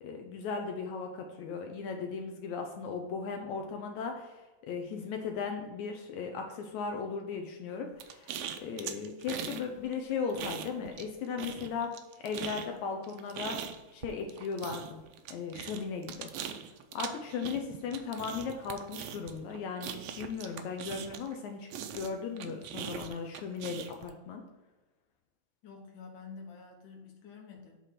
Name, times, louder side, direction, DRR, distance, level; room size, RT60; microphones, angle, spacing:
voice 1, 0.0-8.3 8.6-11.9 12.2-13.6 13.9-15.0 15.3-16.3 16.9-21.7 21.9-24.4, left 5 dB, 75° left, 3 dB, 2.0 m, -37 dB
sound 1, 8.0-9.6 9.9-11.1 11.4-21.4 21.7-24.1, right 9 dB, 75° right, 1.7 m, -41 dB
voice 2, 25.6-27.8, left 5 dB, 50° left, 0 dB, 1.7 m, -48 dB
8.2 x 3.6 x 5.8 m, 1.2 s
omnidirectional pair, 3.4 m